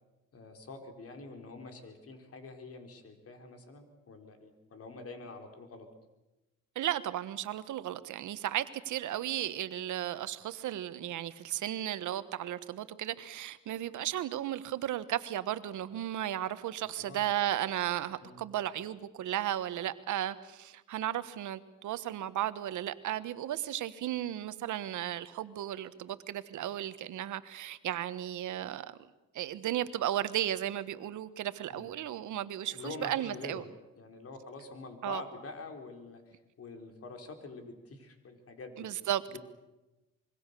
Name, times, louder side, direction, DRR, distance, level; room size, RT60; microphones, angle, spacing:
voice 1, 0.3-5.9 16.9-17.3 18.2-18.4 31.7-31.9 32.7-33.7 33.9-38.9 39.3-39.4, left 3 dB, 50° left, 5 dB, 4.5 m, -46 dB
voice 2, 6.7-29.0 29.3-33.6 35.0-35.2 38.8-39.2, right 12 dB, 75° right, 13 dB, 1.4 m, -35 dB
25.5 x 23.0 x 6.9 m, 1.0 s
cardioid pair, 90°, 30 cm